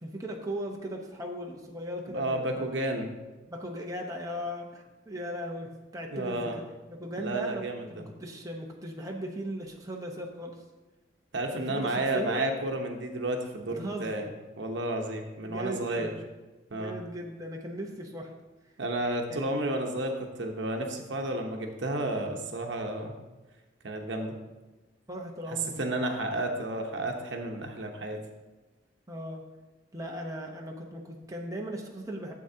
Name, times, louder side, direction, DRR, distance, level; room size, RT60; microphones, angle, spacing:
voice 1, 0.0-2.6 3.5-6.6 6.9-7.6 7.9-10.6 11.7-12.4 13.7-14.3 15.4-16.2 16.7-18.3 19.3-19.6 25.1-25.9 29.1-29.4 29.9-32.3, equal, 20° right, 0 dB, 1.0 m, -38 dB
voice 2, 2.1-3.1 6.1-6.6 7.2-8.0 11.3-14.3 14.6-16.1 16.7-16.9 18.8-23.1 23.8-24.3 25.5-28.2, right 1 dB, 70° right, 3 dB, 1.0 m, -31 dB
12.5 x 7.7 x 2.8 m, 1.1 s
head